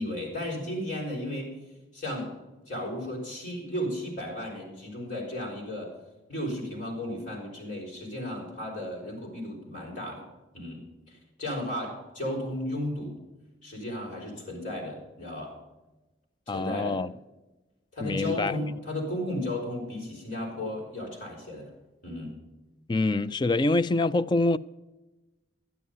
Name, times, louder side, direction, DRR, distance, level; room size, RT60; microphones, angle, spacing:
voice 1, 0.0-1.5 1.9-2.4 2.7-5.9 6.3-10.2 10.5-13.2 13.6-15.6 16.5-17.0 17.9-21.7 22.0-22.3, left 1 dB, 45° left, 5.4 m, -34 dB
voice 2, 16.5-17.1 18.0-18.6 22.9-24.6, left 2 dB, 25° left, 0.3 m, -25 dB
12.0 x 11.0 x 5.5 m
head